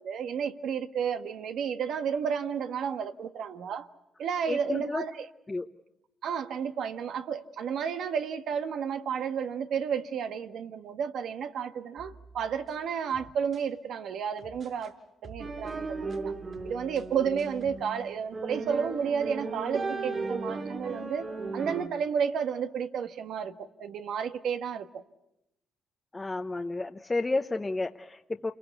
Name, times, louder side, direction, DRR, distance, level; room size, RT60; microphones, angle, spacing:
voice 1, 0.0-3.9 4.2-5.3 6.2-14.9 15.2-16.3 16.6-21.2 21.5-25.0, right 7 dB, 70° right, 8 dB, 1.4 m, -32 dB
voice 2, 4.5-5.0 5.5-5.7 26.1-28.5, left 2 dB, 20° left, 4 dB, 0.9 m, -31 dB
sound 1, 12.0-13.7 14.4-14.9 15.2-17.8, right 4 dB, 55° right, 5.2 m, -50 dB
sound 2, 15.4-21.9, right 3 dB, 40° right, 2.6 m, -36 dB
28.0 x 21.5 x 8.2 m, 0.88 s
cardioid pair, 90°, 0 cm